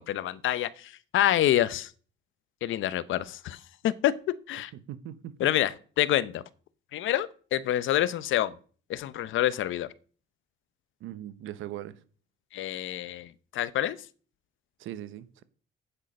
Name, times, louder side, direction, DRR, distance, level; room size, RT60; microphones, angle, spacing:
voice 1, 0.0-1.9 2.6-3.6 3.8-4.1 4.5-4.7 5.4-6.4 6.9-8.6 8.9-9.9 12.5-14.0, left 13 dB, 80° left, 0.7 m, -27 dB
voice 2, 4.7-5.5 11.0-12.0 14.8-15.4, right 12 dB, 85° right, 0.9 m, -40 dB
9.0 x 8.5 x 5.2 m
cardioid pair, 90°, 20 cm